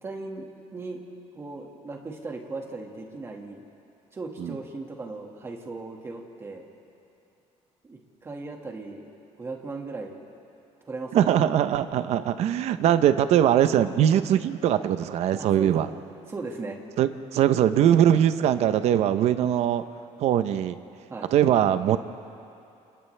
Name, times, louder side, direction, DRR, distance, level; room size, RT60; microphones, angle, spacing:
voice 1, 0.0-1.0 1.4-3.6 4.1-6.7 7.8-9.1 9.4-10.2 10.9-11.5 15.4-15.7 16.3-16.8 21.1-21.3, right 3 dB, 20° right, 1 dB, 1.9 m, -37 dB
voice 2, 11.1-15.9 17.0-19.8 20.2-20.8 21.3-22.0, right 10 dB, 60° right, 11 dB, 0.8 m, -21 dB
29.0 x 28.0 x 3.4 m, 2.7 s
cardioid pair, 175°, 12 cm